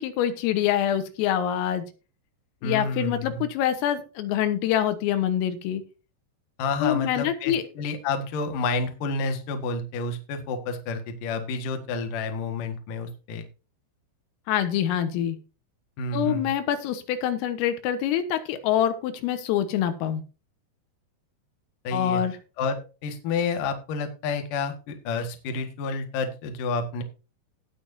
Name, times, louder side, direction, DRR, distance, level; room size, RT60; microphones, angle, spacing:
voice 1, 0.0-1.9 2.6-5.8 6.8-7.6 14.5-15.4 16.1-20.2 21.9-22.3, left 10 dB, 85° left, 10 dB, 3.9 m, -25 dB
voice 2, 2.6-3.4 6.6-13.5 16.0-16.5 21.8-22.2 22.6-27.0, left 3 dB, 60° left, 6 dB, 2.5 m, -30 dB
18.0 x 7.0 x 2.7 m, 0.32 s
omnidirectional pair, 5.8 m